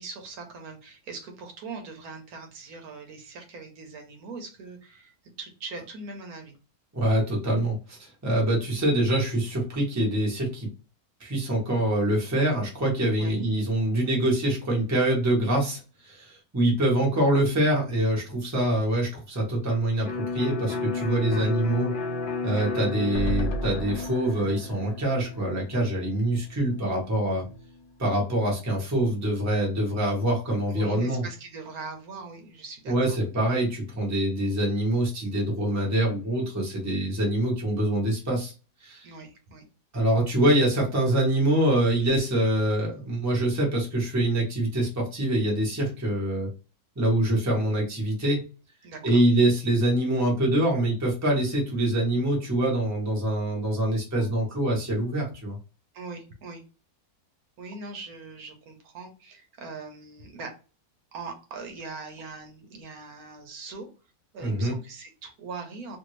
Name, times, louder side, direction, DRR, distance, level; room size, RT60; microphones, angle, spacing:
voice 1, 0.0-6.6 13.2-13.4 21.3-21.5 30.7-33.2 39.0-39.7 48.8-49.2 55.9-56.6 57.6-60.5 61.1-63.9 64.3-66.0, right 4 dB, 75° right, 4 dB, 1.2 m, -41 dB
voice 2, 6.9-10.7 11.2-21.9 22.4-27.4 28.0-31.2 32.9-38.5 38.8-39.1 39.9-46.5 47.0-48.4 49.0-55.6 64.4-64.7, right 1 dB, 15° right, -2 dB, 0.8 m, -25 dB
Electric guitar, 20.1-27.7, left 4 dB, 45° left, 0.8 m, -33 dB
sound 1, 23.1-26.4 26.7-26.8 27.1-27.2, right 1 dB, 75° left, 1.2 m, -34 dB
2.7 x 2.6 x 3.0 m, 0.33 s
omnidirectional pair, 1.6 m